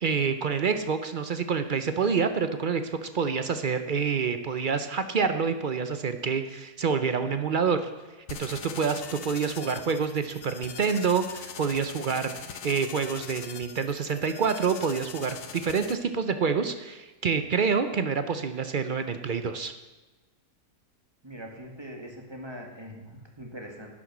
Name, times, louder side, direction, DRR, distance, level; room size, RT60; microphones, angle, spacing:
voice 1, 0.0-7.9 8.3-19.7, right 5 dB, 60° right, 9 dB, 0.5 m, -27 dB
sound 1, 8.3-15.9, left 8 dB, 70° left, 1.4 m, -42 dB
voice 2, 21.2-24.0, equal, 15° right, 1 dB, 1.9 m, -42 dB
11.5 x 9.8 x 6.1 m, 1.2 s
omnidirectional pair, 1.7 m